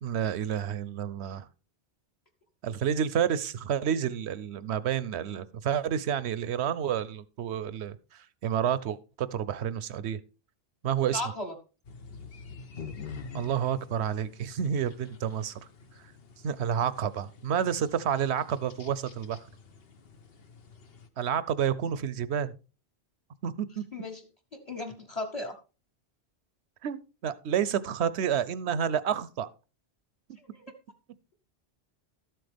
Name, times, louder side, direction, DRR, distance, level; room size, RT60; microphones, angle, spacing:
voice 1, 0.0-1.5 2.6-10.2 10.8-11.2 13.3-15.6 16.4-19.5 21.2-22.5 23.4-23.8 26.8-29.5, right 8 dB, 80° right, 0.9 m, -29 dB
voice 2, 11.1-11.5 23.9-24.2 24.5-25.5 30.5-30.6, left 2 dB, 35° left, 1.3 m, -35 dB
sound 1, 11.8-21.1, left 5 dB, 65° left, 1.1 m, -47 dB
13.0 x 7.8 x 3.4 m
omnidirectional pair, 1.1 m